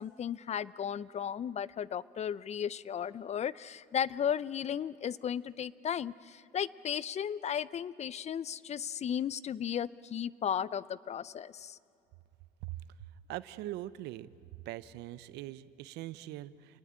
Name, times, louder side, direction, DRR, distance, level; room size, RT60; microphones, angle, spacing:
voice 1, 0.0-11.8, left 8 dB, 40° left, 20 dB, 0.6 m, -35 dB
voice 2, 13.3-14.3 14.7-16.8, right 15 dB, 85° right, 17 dB, 0.8 m, -42 dB
27.5 x 19.5 x 8.8 m, 2.7 s
cardioid pair, 110°, 17 cm